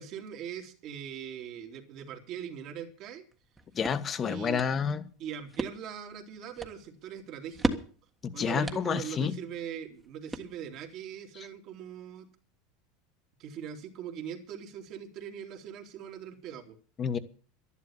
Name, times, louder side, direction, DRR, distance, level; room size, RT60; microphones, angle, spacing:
voice 1, 0.0-3.2 4.2-4.6 5.2-7.8 8.3-12.3 13.4-16.8, right 8 dB, 50° right, 5 dB, 2.9 m, -41 dB
sound 1, 3.3-10.9, right 2 dB, 15° right, 1.5 m, -39 dB
voice 2, 3.7-5.0 8.2-9.4 11.4-11.5 17.0-17.2, left 7 dB, 30° left, 12 dB, 1.3 m, -29 dB
11.5 x 11.0 x 7.3 m, 0.42 s
supercardioid pair, 120°, 0 cm